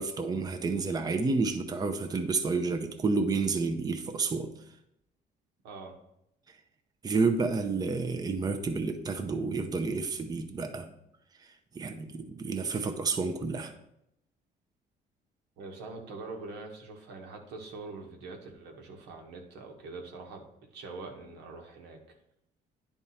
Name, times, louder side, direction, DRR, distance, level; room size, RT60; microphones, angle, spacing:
voice 1, 0.0-4.5 7.0-10.9 11.4-13.7, right 4 dB, 25° right, 6 dB, 0.6 m, -30 dB
voice 2, 5.6-6.0 15.6-20.5 20.7-22.0, right 3 dB, 90° right, 2 dB, 1.4 m, -43 dB
10.0 x 3.6 x 4.2 m, 0.80 s
cardioid pair, 110°, 17 cm